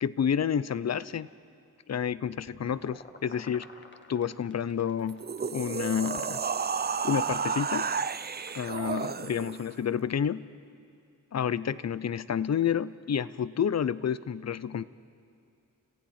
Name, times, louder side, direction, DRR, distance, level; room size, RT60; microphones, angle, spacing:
voice 1, 0.0-1.3 1.9-3.7 4.1-5.2 5.5-6.4 7.0-7.9 8.5-10.4 11.3-14.8, left 8 dB, 50° left, 17 dB, 0.6 m, -29 dB
sound 1, 2.3-10.4, left 2 dB, 35° left, 1.5 m, -53 dB
sound 2, 5.1-9.7, right 6 dB, 30° right, 0.4 m, -32 dB
29.5 x 15.0 x 5.8 m, 2.5 s
wide cardioid pair, 70°, 33 cm